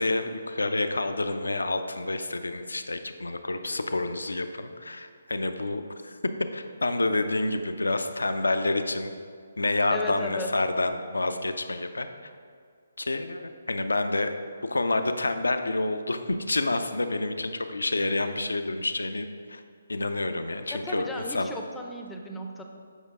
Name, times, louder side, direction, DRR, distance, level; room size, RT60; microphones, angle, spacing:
voice 1, 0.0-6.2 6.5-9.1 9.6-12.1 13.0-14.3 14.6-19.6 19.9-21.5, left 2 dB, 75° left, 8 dB, 0.5 m, -28 dB
voice 2, 9.9-10.5 20.7-22.6, left 1 dB, 5° left, 1 dB, 0.6 m, -35 dB
8.1 x 5.1 x 3.7 m, 2.1 s
figure-of-eight pair, 140°, 0 cm